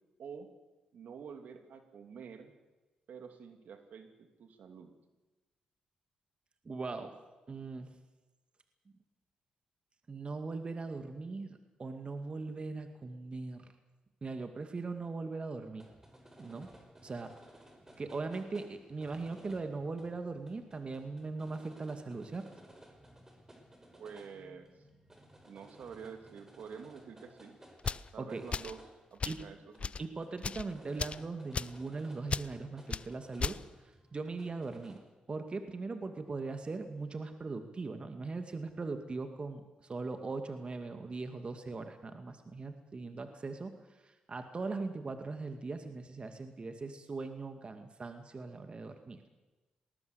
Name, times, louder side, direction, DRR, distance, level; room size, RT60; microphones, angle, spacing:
voice 1, 0.2-0.5 0.9-2.5 3.1-4.9 23.9-24.8 25.4-27.6 28.1-28.8 29.1-30.0, right 6 dB, 70° right, 7 dB, 2.8 m, -48 dB
voice 2, 6.6-7.1 7.5-7.9 10.1-13.7 14.2-15.9 16.4-16.7 17.0-17.4 18.0-22.5 28.2-28.5 29.3-29.4 30.0-35.0 35.3-49.2, right 3 dB, 40° right, 7 dB, 2.2 m, -40 dB
sound 1, 15.6-35.0, right 1 dB, 15° right, 5.4 m, -58 dB
sound 2, 27.8-28.1 28.5-28.8 29.2-29.4 29.8-30.0 30.4-30.7 31.0-31.2 31.5-31.8 32.3-32.5 32.9-33.1 33.4-33.6, left 5 dB, 45° left, 0.7 m, -35 dB
20.0 x 19.0 x 8.1 m, 1.1 s
supercardioid pair, 65°, 3 cm